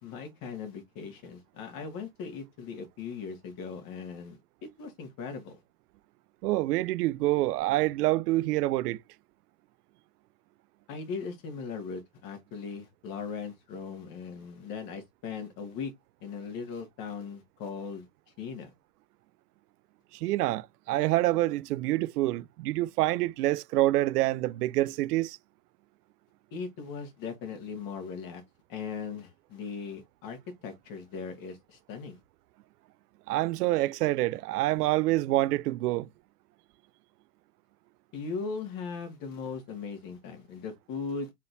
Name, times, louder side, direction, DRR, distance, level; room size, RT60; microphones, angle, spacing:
voice 1, 0.0-4.4 4.7-5.6 10.9-15.9 16.2-18.1 18.4-18.7 26.5-28.4 28.7-32.2 38.1-41.3, left 5 dB, 45° left, 1.9 m, -39 dB
voice 2, 6.4-9.0 20.1-25.4 33.3-36.1, right 17 dB, 70° right, 0.5 m, -27 dB
4.2 x 3.9 x 2.6 m
hypercardioid pair, 105°, 48 cm